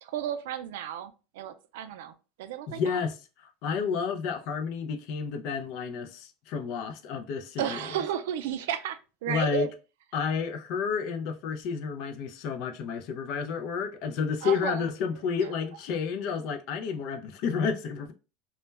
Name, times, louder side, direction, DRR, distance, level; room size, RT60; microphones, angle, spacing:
voice 1, 0.0-3.0 7.6-9.7 14.4-14.9 15.4-15.5, right 10 dB, 90° right, 0.3 m, -33 dB
voice 2, 2.7-8.0 9.3-9.7 10.1-18.1, left 6 dB, 55° left, 0.4 m, -31 dB
2.2 x 2.1 x 3.2 m
cardioid pair, 165°, 0 cm